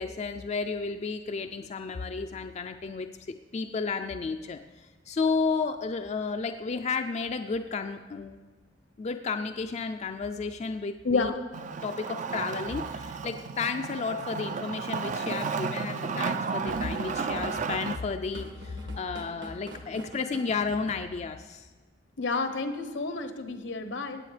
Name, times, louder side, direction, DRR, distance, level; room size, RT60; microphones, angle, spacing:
voice 1, 0.0-8.4 9.0-11.4 11.8-21.7, left 4 dB, 35° left, 6 dB, 0.4 m, -32 dB
voice 2, 11.0-11.4 22.2-24.2, left 4 dB, 80° left, 8 dB, 0.9 m, -30 dB
Wood, 11.5-18.0, right 5 dB, 40° right, 0.4 m, -33 dB
Drum kit / Drum, 16.7-21.5, right 1 dB, 65° right, 1.4 m, -45 dB
17.5 x 8.5 x 3.3 m, 1.4 s
head